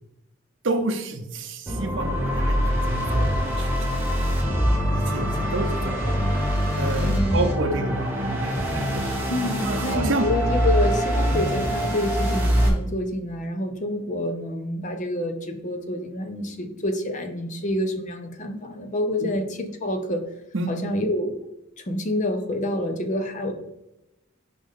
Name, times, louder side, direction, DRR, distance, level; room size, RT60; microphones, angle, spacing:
voice 1, 0.6-3.7 4.9-6.2 6.8-9.2 9.6-10.3 19.2-19.3 20.5-20.8, right 2 dB, 60° right, 4 dB, 0.7 m, -29 dB
sound 1, 1.7-12.7, equal, 10° right, 1.3 m, -24 dB
voice 2, 7.1-7.5 9.3-20.2 20.7-21.5 21.8-23.5, left 1 dB, 35° left, 6 dB, 0.7 m, -28 dB
5.3 x 5.0 x 3.7 m, 0.89 s
head